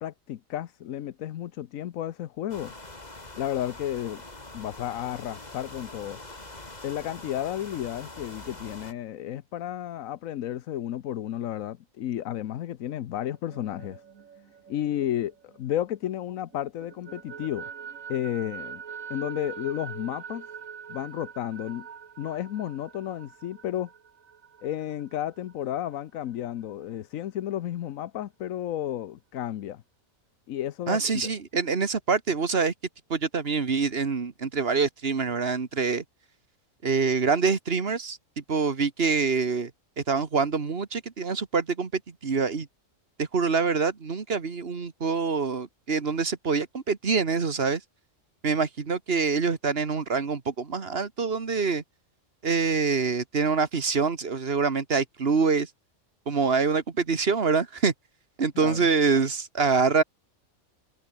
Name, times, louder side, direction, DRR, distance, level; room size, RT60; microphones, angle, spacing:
voice 1, 0.0-2.7 3.4-4.2 4.5-6.2 6.8-14.0 14.7-17.7 18.1-18.8 19.1-20.5 20.9-21.9 22.2-23.9 24.6-29.8 30.5-31.3 58.5-58.9, left 12 dB, 85° left, 1.2 m, -32 dB
sound 1, 2.5-8.9, left 2 dB, 30° left, 2.9 m, -44 dB
sound 2, 13.3-16.2 16.5-25.9, right 7 dB, 85° right, 1.8 m, -44 dB
voice 2, 30.9-32.7 33.1-36.0 36.8-38.2 38.5-39.7 40.0-42.7 43.2-47.8 48.4-51.8 52.4-55.7 56.3-57.9 58.4-60.0, right 5 dB, 50° right, 1.8 m, -25 dB
omnidirectional pair, 1.4 m